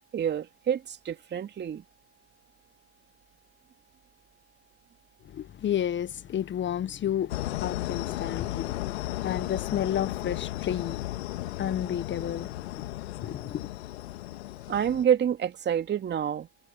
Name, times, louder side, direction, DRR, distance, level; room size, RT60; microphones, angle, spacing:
voice 1, 0.1-1.8 14.7-16.5, right 9 dB, 35° right, 2.7 m, -27 dB
voice 2, 5.2-13.7, left 10 dB, 35° left, 1.6 m, -32 dB
sound 1, 7.3-15.0, left 16 dB, 75° left, 2.1 m, -35 dB
hypercardioid pair, 80°, 33 cm